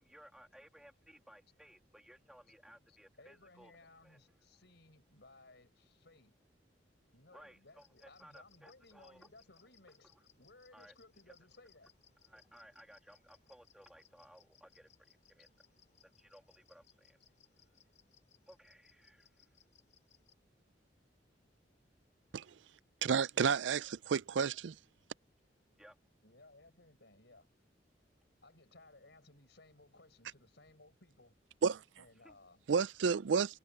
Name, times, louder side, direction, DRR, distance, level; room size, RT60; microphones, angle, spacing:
voice 1, 0.0-3.7 4.0-4.2 7.3-9.3 10.0-10.2 10.7-10.9 12.3-15.6 16.0-17.2 18.5-19.5 25.8-26.0 32.2-32.4, equal, 5° right, 2.7 m, -60 dB
voice 2, 2.9-6.3 7.1-11.9 26.2-27.5 28.4-31.3 32.0-32.7, left 2 dB, 65° left, 6.6 m, -61 dB
sound 1, 7.7-20.3, left 8 dB, 40° left, 5.0 m, -69 dB
voice 3, 23.0-24.8 31.6-31.8 32.7-33.6, right 6 dB, 80° right, 0.4 m, -31 dB
head